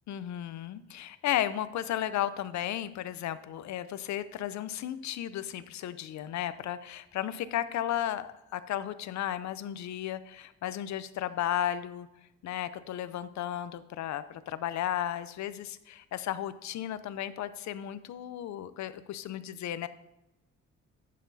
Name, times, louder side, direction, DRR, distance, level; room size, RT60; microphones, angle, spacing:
voice 1, 0.1-12.1 12.4-19.9, left 11 dB, 70° left, 14 dB, 0.6 m, -34 dB
11.0 x 8.4 x 2.7 m, 0.90 s
cardioid pair, 90°, 30 cm